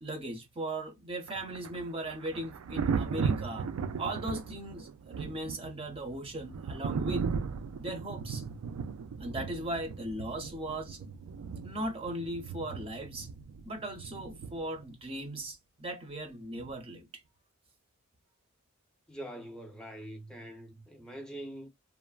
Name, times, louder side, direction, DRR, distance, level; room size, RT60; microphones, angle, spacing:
voice 1, 0.0-3.7 4.0-7.3 7.8-8.4 9.2-11.0 11.6-13.3 13.7-17.2, right 1 dB, 25° right, 0.6 m, -38 dB
Thunder, 1.3-14.9 16.6-16.8, right 5 dB, 75° right, 0.3 m, -37 dB
voice 2, 19.1-21.7, right 1 dB, 5° left, 0.7 m, -44 dB
3.1 x 2.0 x 2.3 m
head